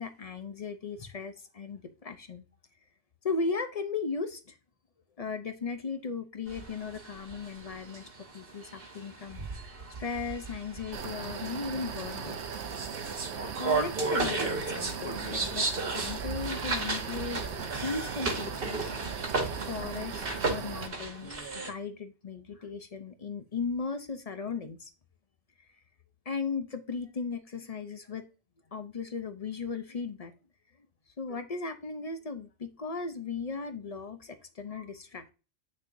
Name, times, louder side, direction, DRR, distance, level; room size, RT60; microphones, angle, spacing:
voice 1, 0.0-2.4 3.2-4.6 5.2-8.1 8.3-9.4 10.0-12.4 13.6-17.4 17.8-19.2 19.7-21.3 21.6-24.9 26.3-28.2 28.7-30.3 31.2-35.3, left 4 dB, 40° left, 8 dB, 0.7 m, -36 dB
sound 1, 6.5-21.7, right 3 dB, 50° right, 1.5 m, -35 dB
sound 2, 10.9-20.9, right 6 dB, 70° right, 1.1 m, -38 dB
8.4 x 6.4 x 2.7 m, 0.32 s
omnidirectional pair, 1.2 m